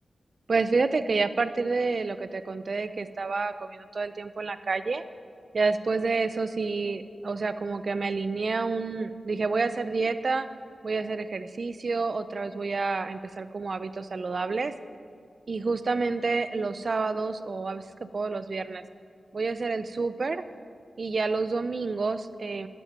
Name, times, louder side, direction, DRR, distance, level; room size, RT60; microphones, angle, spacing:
voice 1, 0.5-5.0 5.5-10.5 10.8-14.7 15.5-17.8 18.1-18.8 19.3-20.4 21.0-22.7, right 4 dB, 55° right, 12 dB, 0.5 m, -29 dB
11.5 x 9.0 x 5.9 m, 2.2 s
cardioid pair, 65°, 0 cm